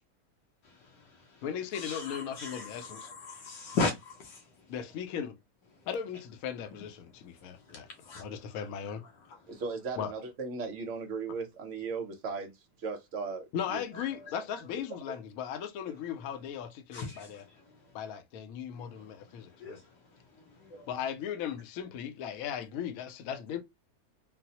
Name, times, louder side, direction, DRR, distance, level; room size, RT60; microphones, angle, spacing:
voice 1, 0.6-1.5 1.7-4.7 5.7-5.9 7.0-9.6 13.9-14.4 15.9-16.3 16.9-18.1 18.7-20.9, left 3 dB, 90° left, 1.5 m, -40 dB
voice 2, 1.4-3.1 4.7-5.4 5.9-7.9 8.2-9.0 10.0-10.1 13.5-17.4 17.9-19.8 20.9-23.6, left 8 dB, 70° left, 0.9 m, -37 dB
voice 3, 9.5-13.8, right 4 dB, 60° right, 0.9 m, -37 dB
3.9 x 2.0 x 2.8 m
omnidirectional pair, 1.8 m